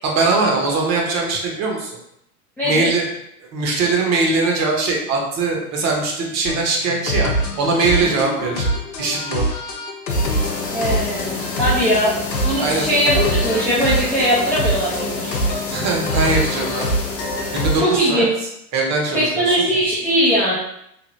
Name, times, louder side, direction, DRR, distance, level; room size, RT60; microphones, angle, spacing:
voice 1, 0.0-2.0 2.6-3.0 3.5-7.3 7.6-8.7 9.0-9.4 12.6-12.9 15.7-16.9 17.5-18.2 18.7-19.6, right 3 dB, 35° right, -1 dB, 0.9 m, -21 dB
voice 2, 2.6-2.9 10.7-12.1 12.5-15.4 17.8-18.3 19.1-20.5, equal, 5° left, -11 dB, 0.4 m, -20 dB
sound 1, 6.5-18.2, equal, 85° left, 0.7 m, -25 dB
sound 2, 10.1-17.8, left 3 dB, 30° left, 0.9 m, -29 dB
3.2 x 2.6 x 2.6 m, 0.76 s
hypercardioid pair, 105°, 48 cm